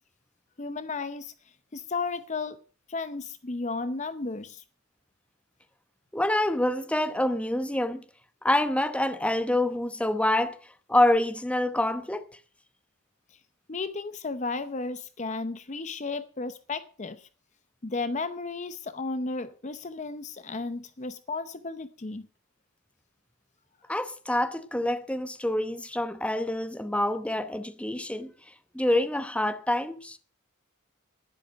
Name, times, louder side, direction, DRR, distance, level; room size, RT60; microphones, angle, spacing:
voice 1, 0.6-1.3 1.7-2.6 2.9-4.6 13.7-17.3 17.8-22.3, left 3 dB, 35° left, 0.7 m, -34 dB
voice 2, 6.1-8.0 8.4-10.6 10.9-12.2 23.9-28.3 28.7-30.2, left 1 dB, 5° left, 0.9 m, -26 dB
12.0 x 10.5 x 6.3 m
head